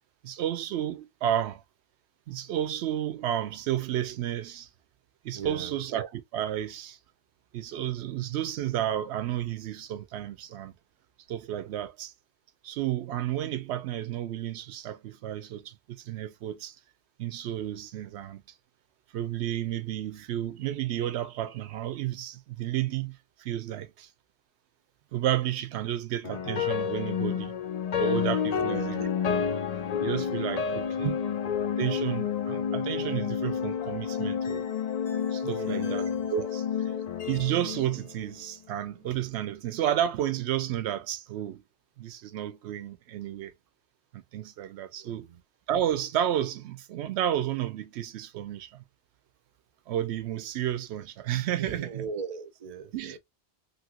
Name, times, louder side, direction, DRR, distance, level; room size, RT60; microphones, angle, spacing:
voice 1, 0.2-1.6 2.3-4.7 5.2-7.0 7.5-10.7 11.3-12.1 12.6-16.8 17.2-18.4 19.1-24.1 25.1-27.5 28.0-29.2 30.0-31.1 31.8-34.6 35.3-36.9 37.3-41.6 42.0-43.5 44.1-45.3 45.7-48.8 49.9-52.0 52.9-53.2, right 11 dB, 75° right, 0.8 m, -31 dB
voice 2, 5.3-5.7 28.5-29.1 31.0-31.2 35.4-36.3 36.9-37.0 45.0-45.4 51.6-53.2, right 7 dB, 50° right, 0.5 m, -37 dB
sound 1, 26.2-38.5, left 8 dB, 60° left, 0.4 m, -30 dB
2.9 x 2.6 x 2.8 m
omnidirectional pair, 1.1 m